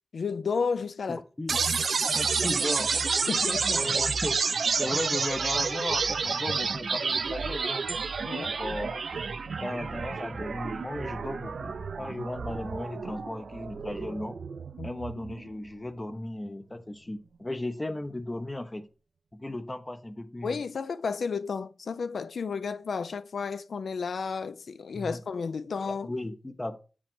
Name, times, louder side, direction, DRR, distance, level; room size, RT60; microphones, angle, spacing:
voice 1, 0.1-1.2 1.5-1.6 3.3-3.8 8.3-8.6 14.8-14.9 20.4-26.1, left 5 dB, 80° left, 0.3 m, -32 dB
voice 2, 1.1-1.6 2.1-3.0 3.7-4.4 4.8-7.9 8.4-9.0 9.6-14.4 14.8-18.9 19.3-20.6 24.9-25.2 25.9-26.8, left 1 dB, 20° left, 0.5 m, -36 dB
sound 1, 1.5-15.5, right 5 dB, 75° right, 0.4 m, -30 dB
sound 2, 7.9-10.3 10.9-11.0, right 3 dB, 45° right, 1.0 m, -47 dB
7.8 x 4.9 x 3.6 m
wide cardioid pair, 80°, 0 cm